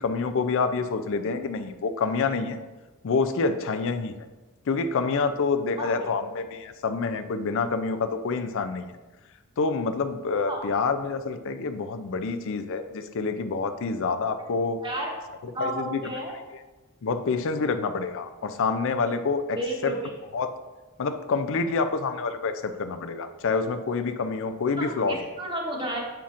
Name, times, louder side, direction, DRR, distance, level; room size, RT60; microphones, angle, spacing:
voice 1, 0.0-2.6 3.0-4.1 4.7-9.0 9.6-14.8 15.6-16.1 17.0-19.6 19.8-20.0 20.3-20.5 21.0-25.2, left 4 dB, 60° left, 9 dB, 0.4 m, -27 dB
voice 2, 5.8-6.1 10.5-10.6 14.8-15.1 15.5-16.3 19.6-20.1 24.7-26.0, right 1 dB, 20° right, 0 dB, 1.0 m, -32 dB
7.1 x 5.7 x 2.5 m, 1.2 s
head